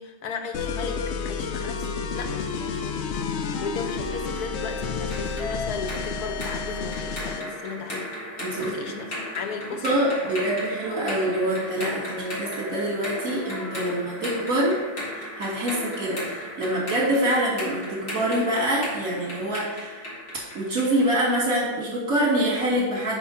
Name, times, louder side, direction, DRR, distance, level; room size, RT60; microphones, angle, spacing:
voice 1, 0.0-8.1 8.6-9.8 10.3-10.6, left 5 dB, 90° left, 5 dB, 1.4 m, -35 dB
sound 1, 0.5-7.5, left 5 dB, 60° left, 0.8 m, -30 dB
sound 2, 3.9-21.7, left 1 dB, 45° left, 2.4 m, -37 dB
voice 2, 8.4-8.8 9.8-14.8 15.1-20.1 20.5-23.2, right 1 dB, 65° right, -5 dB, 3.0 m, -25 dB
sound 3, 10.8-16.1, left 3 dB, 40° right, 2.0 m, -44 dB
6.0 x 5.9 x 5.6 m, 1.3 s
omnidirectional pair, 1.6 m